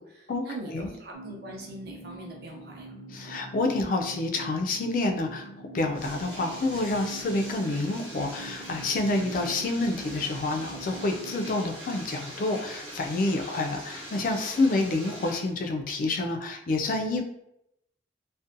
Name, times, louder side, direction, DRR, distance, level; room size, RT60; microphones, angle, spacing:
voice 1, 0.0-2.9, right 1 dB, 55° right, -1 dB, 0.6 m, -42 dB
sound 1, 1.1-11.6, right 2 dB, 85° left, 0.6 m, -45 dB
voice 2, 3.1-5.5 5.7-17.2, left 2 dB, 45° left, 4 dB, 0.3 m, -28 dB
Bathtub (filling or washing), 5.8-15.5, equal, 30° right, 0.9 m, -42 dB
2.6 x 2.1 x 2.5 m, 0.80 s
head